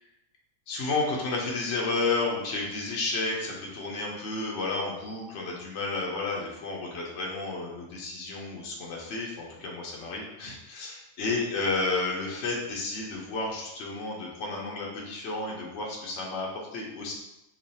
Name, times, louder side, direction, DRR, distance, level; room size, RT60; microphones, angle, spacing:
voice 1, 0.7-17.1, left 3 dB, 60° left, -2 dB, 0.9 m, -31 dB
3.1 x 2.3 x 4.0 m, 0.92 s
omnidirectional pair, 1.5 m